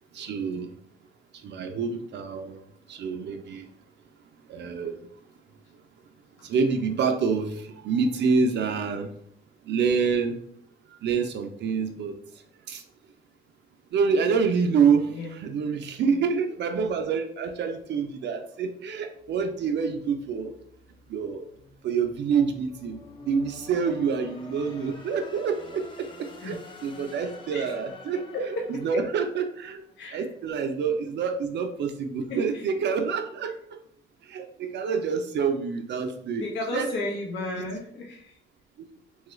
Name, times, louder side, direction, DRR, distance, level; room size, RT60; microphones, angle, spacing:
voice 1, 0.1-0.7 1.4-2.6 2.9-3.7 4.5-5.0 6.4-9.1 9.7-10.4 11.0-12.2 12.7-12.8 13.9-20.5 21.1-21.4 21.8-26.1 26.4-28.2 28.7-29.8 30.1-33.5 34.3-36.5 36.7-36.9 37.6-37.8, right 5 dB, 65° right, 5 dB, 0.4 m, -27 dB
sound 1, 19.2-30.2, left 3 dB, 25° left, 0.5 m, -49 dB
voice 2, 28.3-28.8 30.0-30.2 30.9-31.0 32.3-32.6 36.4-38.4, left 2 dB, 70° left, -2 dB, 0.7 m, -33 dB
3.0 x 2.3 x 3.0 m, 0.66 s
cardioid pair, 90°, 20 cm